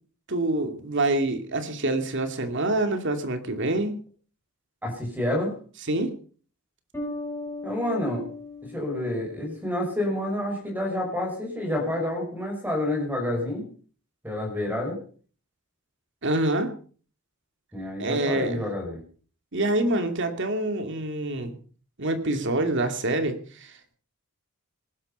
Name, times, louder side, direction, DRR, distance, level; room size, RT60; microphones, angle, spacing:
voice 1, 0.3-4.0 5.9-6.1 16.2-16.7 18.0-18.6 19.5-21.5 22.0-24.0, right 2 dB, 55° right, 7 dB, 2.5 m, -26 dB
voice 2, 4.8-5.5 7.6-8.2 8.6-13.7 14.2-15.0 17.7-19.0, left 1 dB, 10° right, 1 dB, 5.6 m, -28 dB
Bass guitar, 6.9-10.4, left 2 dB, 10° left, 6.6 m, -38 dB
19.5 x 12.0 x 5.5 m, 0.43 s
head